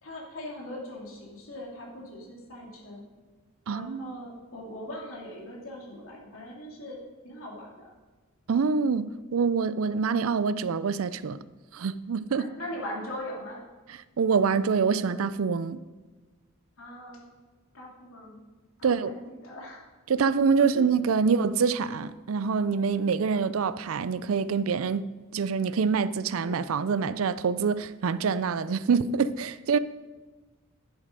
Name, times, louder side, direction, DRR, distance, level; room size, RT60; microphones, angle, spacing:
voice 1, 0.0-3.0 3.7-7.0 7.2-7.9 12.3-13.6 16.8-17.3 17.7-18.4 18.8-19.8 20.6-20.9 21.2-21.5 26.4-26.6, left 1 dB, 80° left, 2.9 m, -40 dB
voice 2, 3.7-4.1 8.5-11.4 11.7-12.5 13.9-15.8 18.8-19.2 20.1-25.0 25.3-29.8, right 5 dB, 80° right, 0.4 m, -26 dB
11.0 x 7.5 x 5.2 m
head